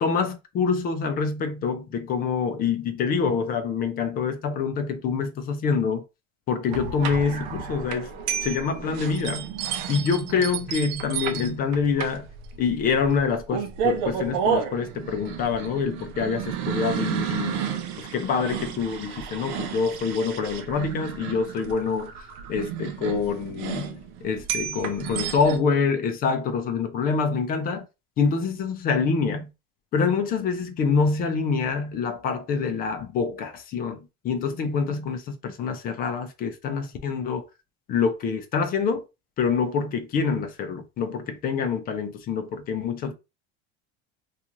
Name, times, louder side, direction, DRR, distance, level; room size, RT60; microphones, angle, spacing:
voice 1, 0.0-6.0 6.5-8.1 8.4-9.5 9.9-12.3 12.6-27.8 28.2-29.5 29.9-37.4 37.9-39.0 39.4-43.1, left 5 dB, 30° left, 0.4 m, -26 dB
sound 1, 6.7-25.6, right 7 dB, 80° right, 0.6 m, -32 dB
2.5 x 2.4 x 2.9 m
cardioid pair, 155°, 32 cm